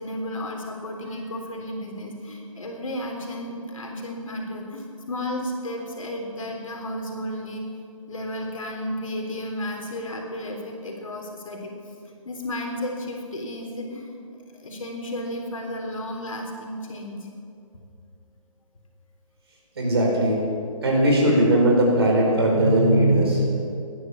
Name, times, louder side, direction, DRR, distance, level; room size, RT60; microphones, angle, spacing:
voice 1, 0.0-7.6 8.1-11.7 12.3-17.3, left 1 dB, 65° left, 1 dB, 3.5 m, -33 dB
voice 2, 19.8-20.4 20.8-23.6, right 1 dB, 45° right, -2 dB, 4.8 m, -19 dB
18.0 x 11.0 x 7.1 m, 2.4 s
hypercardioid pair, 180°, 18 cm